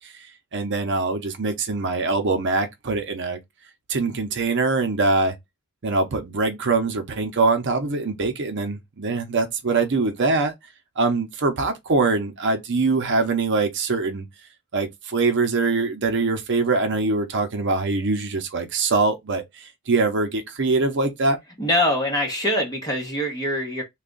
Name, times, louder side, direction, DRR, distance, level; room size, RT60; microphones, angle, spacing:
voice 1, 0.0-3.4 3.9-5.3 5.8-10.5 11.0-14.3 14.7-21.4, right 3 dB, 55° right, 0.7 m, -23 dB
voice 2, 21.6-23.8, left 1 dB, 20° left, 1.3 m, -23 dB
3.4 x 2.4 x 3.8 m
head